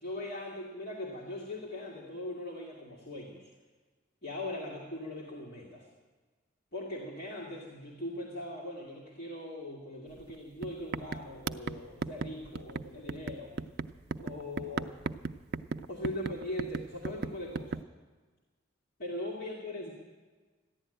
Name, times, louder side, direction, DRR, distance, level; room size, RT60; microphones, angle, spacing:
voice 1, 0.0-3.5 4.2-5.9 6.7-13.5 14.2-14.9 15.9-17.8 19.0-19.9, left 1 dB, 50° left, -5 dB, 2.1 m, -40 dB
sound 1, 10.2-10.3 10.6-17.8, right 4 dB, 50° right, 0.4 m, -37 dB
14.5 x 11.0 x 8.9 m, 1.4 s
head